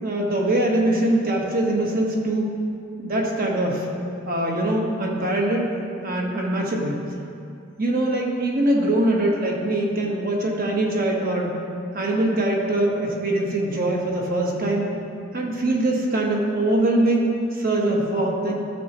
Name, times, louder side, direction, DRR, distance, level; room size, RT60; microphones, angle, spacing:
voice 1, 0.0-2.5 3.0-3.9 4.2-5.7 6.0-7.0 7.8-11.6 11.9-14.8 15.3-18.5, right 1 dB, 45° right, -1 dB, 1.3 m, -22 dB
13.0 x 6.8 x 3.0 m, 2.5 s
head